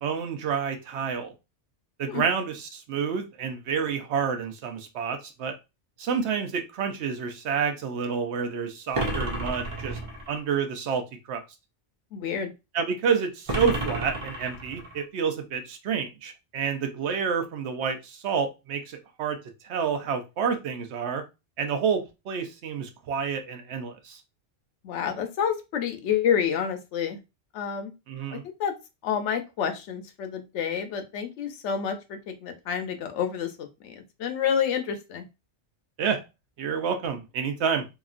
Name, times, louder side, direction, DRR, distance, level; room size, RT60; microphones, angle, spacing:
voice 1, 0.0-1.3 2.0-5.5 6.0-10.0 10.3-11.4 12.7-19.4 19.6-21.2 21.6-24.2 28.1-28.4 36.0-36.2 36.6-37.9, right 6 dB, 70° right, 6 dB, 0.8 m, -29 dB
sound 1, 8.9-10.4 13.5-15.0, right 1 dB, 45° right, 0.4 m, -31 dB
voice 2, 12.1-12.5 24.8-27.2 27.5-27.9 28.3-28.7 29.0-35.2, left 8 dB, 75° left, 6 dB, 0.9 m, -29 dB
2.9 x 2.4 x 2.4 m, 0.26 s
omnidirectional pair, 1.2 m